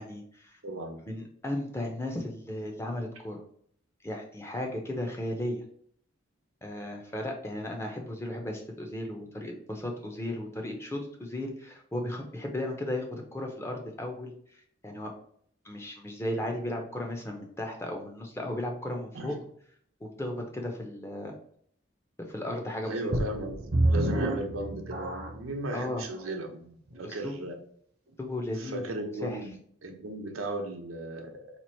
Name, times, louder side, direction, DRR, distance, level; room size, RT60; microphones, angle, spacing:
voice 1, 0.0-0.6 1.1-3.4 4.0-5.6 6.6-14.3 14.8-15.1 15.6-19.3 20.0-21.3 22.3-23.0 25.7-26.0 27.0-27.4 28.2-29.4, left 1 dB, 15° left, 1 dB, 0.5 m, -35 dB
voice 2, 0.6-1.0 19.1-19.4 22.9-23.7 23.9-27.5 28.6-31.3, right 1 dB, 90° right, 3 dB, 0.7 m, -36 dB
sound 1, 23.1-25.5 26.2-26.3 26.9-27.0, right 1 dB, 50° right, 0.6 m, -28 dB
2.9 x 2.5 x 4.3 m, 0.63 s
head